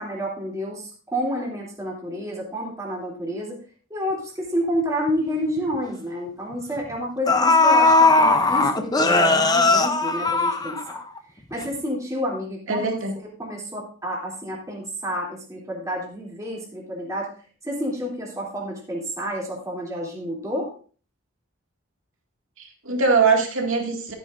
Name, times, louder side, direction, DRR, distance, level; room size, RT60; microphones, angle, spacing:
voice 1, 0.0-3.6 3.9-11.0 11.5-12.9 13.2-17.3 17.6-20.7, equal, 15° right, -4 dB, 3.0 m, -29 dB
sound 1, 5.1-5.2 5.6-5.8 6.8-6.9 7.3-11.2 11.5-11.6, left 3 dB, 20° left, 0.7 m, -18 dB
voice 2, 12.7-13.2 22.6-24.1, right 4 dB, 70° right, 1 dB, 2.3 m, -22 dB
13.5 x 9.6 x 2.6 m, 0.40 s
head